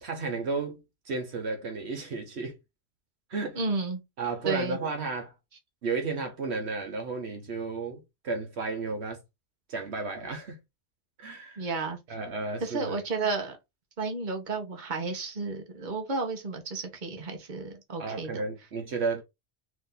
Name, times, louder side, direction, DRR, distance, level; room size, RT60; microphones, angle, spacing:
voice 1, 0.0-2.6 3.3-3.6 4.2-5.3 5.8-9.2 9.7-10.6 11.2-11.7 12.1-13.0 18.0-19.2, right 4 dB, 70° right, 1.2 m, -33 dB
voice 2, 3.5-4.0 4.4-4.8 11.6-12.0 12.6-13.6 14.0-18.4, right 3 dB, 45° right, 1.2 m, -32 dB
5.0 x 2.7 x 3.8 m
omnidirectional pair, 1.1 m